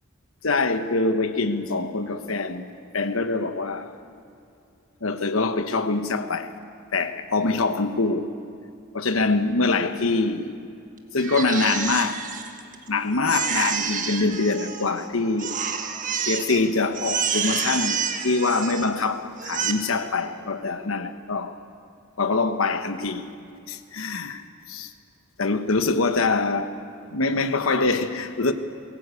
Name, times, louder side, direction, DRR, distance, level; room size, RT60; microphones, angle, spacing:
voice 1, 0.4-2.7 2.9-3.9 5.0-6.5 6.9-8.3 8.9-10.6 11.1-12.2 12.9-15.6 16.2-21.5 22.2-23.3 23.7-24.4 24.7-24.9 25.4-26.7 27.1-28.5, left 3 dB, 70° left, 1.1 m, -24 dB
Crying sobbing, 11.2-12.9 13.3-15.0 15.4-16.6 16.9-19.0 19.4-19.7, right 6 dB, 40° right, 1.5 m, -28 dB
22.0 x 17.0 x 8.4 m
head